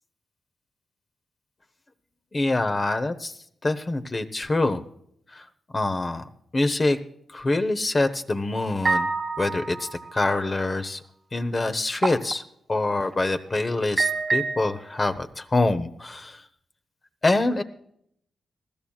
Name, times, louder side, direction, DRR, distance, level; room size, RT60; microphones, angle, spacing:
voice 1, 2.3-3.3 3.6-4.8 5.3-5.4 5.7-7.0 7.3-9.1 9.4-11.0 11.3-12.4 12.7-16.4 17.2-17.6, left 2 dB, 30° left, 8 dB, 1.0 m, -25 dB
sound 1, 8.8-10.3 12.0-12.3 13.0-13.2 14.0-15.0, right 4 dB, 40° right, 1.3 m, -26 dB
20.5 x 14.5 x 2.4 m, 0.69 s
cardioid pair, 90°, 0 cm